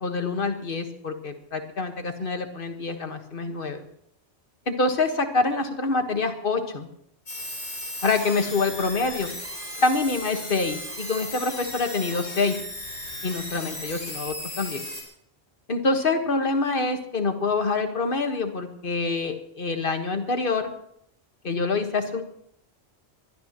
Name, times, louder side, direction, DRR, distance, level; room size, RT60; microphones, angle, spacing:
voice 1, 0.0-3.8 4.7-6.9 8.0-9.3 9.8-12.6 13.2-14.8 15.7-20.7 21.4-22.2, left 3 dB, 55° left, 6 dB, 1.7 m, -26 dB
sound 1, 7.3-15.0, left 1 dB, 80° left, 5.8 m, -36 dB
23.0 x 17.0 x 3.0 m, 0.71 s
omnidirectional pair, 1.1 m